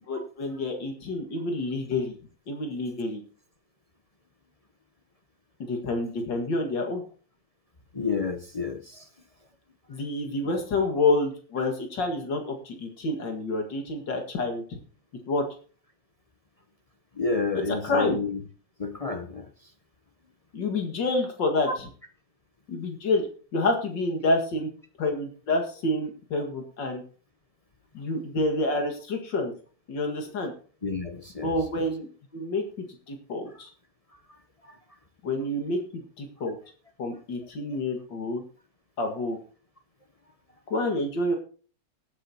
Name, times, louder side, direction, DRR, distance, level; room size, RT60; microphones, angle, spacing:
voice 1, 0.1-2.2 2.5-3.2 5.6-7.0 9.9-14.8 15.3-15.4 17.7-18.2 20.5-21.7 22.7-23.3 23.5-24.7 25.0-27.0 27.9-29.5 29.9-30.5 31.4-32.6 33.1-33.7 35.2-36.6 37.0-38.4 39.0-39.4 40.7-41.4, left 2 dB, 75° left, 3 dB, 2.5 m, -28 dB
voice 2, 7.9-9.0 17.2-18.4 18.8-19.5 30.8-31.5 34.7-34.8, left 4 dB, 45° left, 6 dB, 0.4 m, -30 dB
18.5 x 8.4 x 2.8 m, 0.39 s
omnidirectional pair, 2.0 m